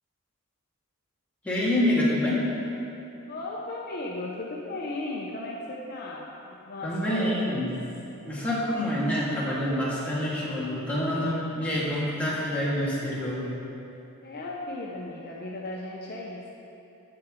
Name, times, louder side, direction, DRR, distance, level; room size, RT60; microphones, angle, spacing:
voice 1, 1.4-2.4 6.8-7.7 8.2-13.4, left 1 dB, 5° left, -8 dB, 2.0 m, -27 dB
voice 2, 3.3-7.6 14.2-16.5, left 2 dB, 45° left, -3 dB, 0.7 m, -36 dB
15.5 x 5.8 x 3.7 m, 2.8 s
head